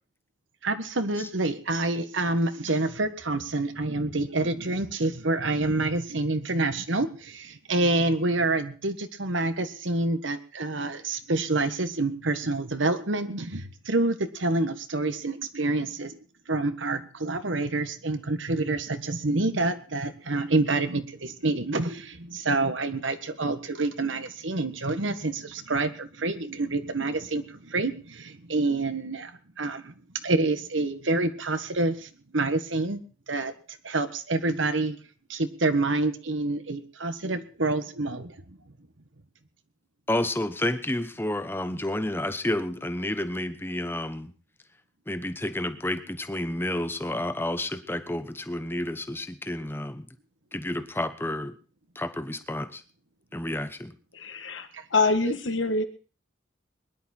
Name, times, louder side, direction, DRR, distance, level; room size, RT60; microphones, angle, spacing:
voice 1, 0.6-16.1 16.5-29.3 29.6-29.9 30.2-33.0 33.3-33.5 33.8-35.0 35.3-38.6 54.7-54.8, right 2 dB, 80° right, 10 dB, 1.5 m, -27 dB
voice 2, 40.1-44.3 45.1-50.0 50.5-51.5 51.9-52.8 53.3-53.9, left 1 dB, 10° left, 10 dB, 1.0 m, -30 dB
voice 3, 54.1-55.8, left 3 dB, 80° left, 8 dB, 1.6 m, -25 dB
22.0 x 11.0 x 4.4 m, 0.38 s
head